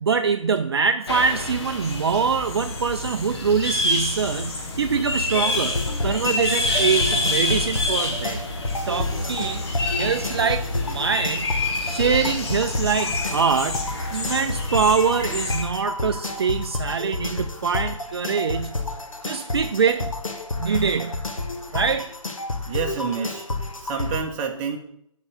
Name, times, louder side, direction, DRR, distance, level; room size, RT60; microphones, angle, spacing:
voice 1, 0.0-5.8 6.0-8.5 8.9-9.7 9.9-11.5 11.8-13.9 14.1-18.8 19.2-20.1 20.6-21.2 21.7-22.1, right 6 dB, 50° right, 8 dB, 0.4 m, -24 dB
sound 1, 1.1-15.6, left 2 dB, 50° left, 1.4 m, -27 dB
sound 2, 5.3-24.2, left 2 dB, 75° left, 1.2 m, -30 dB
voice 2, 9.0-9.5 22.7-23.5 23.8-24.8, right 6 dB, 20° right, 2 dB, 0.8 m, -29 dB
6.9 x 4.6 x 6.6 m, 0.74 s
figure-of-eight pair, 145°, 17 cm